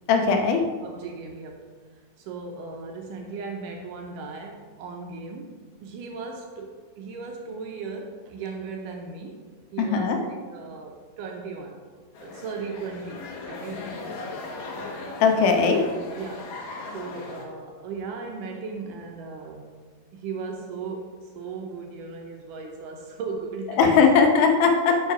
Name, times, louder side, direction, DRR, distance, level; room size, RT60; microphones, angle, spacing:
voice 1, 0.1-0.6 9.8-10.2 15.2-15.8 23.8-24.9, left 5 dB, 85° left, 4 dB, 2.7 m, -19 dB
voice 2, 0.8-1.7 2.2-9.4 9.7-11.9 12.2-13.9 15.5-15.6 16.2-16.6 16.9-19.8 20.1-24.1 24.9-25.0, right 4 dB, 75° right, 2 dB, 2.0 m, -37 dB
sound 1, 12.1-17.4, left 3 dB, 65° left, 2.1 m, -38 dB
8.0 x 5.6 x 4.9 m, 1.5 s
omnidirectional pair, 4.3 m